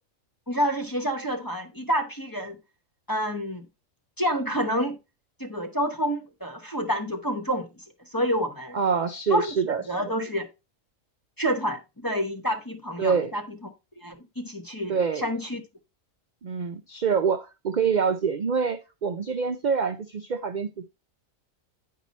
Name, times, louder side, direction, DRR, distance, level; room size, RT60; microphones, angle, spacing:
voice 1, 0.5-2.6 3.1-3.7 4.2-5.0 5.4-7.8 8.1-8.8 9.3-9.5 9.9-10.5 11.4-13.4 14.0-15.6, equal, 20° left, 0.8 m, -28 dB
voice 2, 8.7-9.8 13.0-13.3 14.9-15.2 16.4-20.8, right 6 dB, 55° right, 0.5 m, -26 dB
9.7 x 4.7 x 4.1 m
omnidirectional pair, 1.4 m